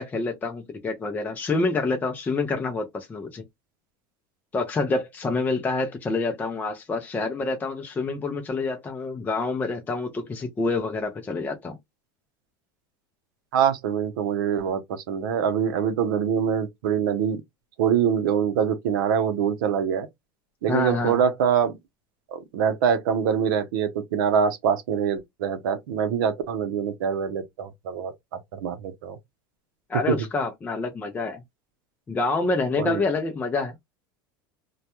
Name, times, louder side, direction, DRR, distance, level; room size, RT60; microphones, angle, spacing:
voice 1, 0.0-3.4 4.5-11.7 20.7-21.2 29.9-31.4 32.1-33.7, left 3 dB, 15° left, 0.4 m, -27 dB
voice 2, 13.5-17.4 17.8-20.1 20.6-21.7 22.3-28.1 28.5-29.2 30.1-30.2 32.8-33.0, right 7 dB, 80° right, 0.6 m, -24 dB
2.2 x 2.1 x 2.8 m
supercardioid pair, 130°, 11 cm